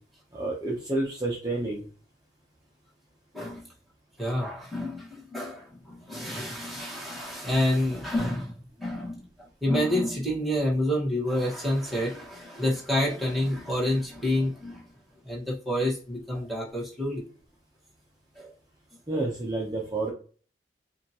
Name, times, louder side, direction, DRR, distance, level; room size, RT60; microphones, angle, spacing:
voice 1, 0.3-1.8 19.1-20.1, right 2 dB, 20° right, -4 dB, 0.8 m, -29 dB
voice 2, 4.2-14.8 15.2-17.2 18.3-18.5, left 1 dB, ahead, -6 dB, 1.4 m, -28 dB
5.0 x 2.6 x 2.9 m, 0.39 s
head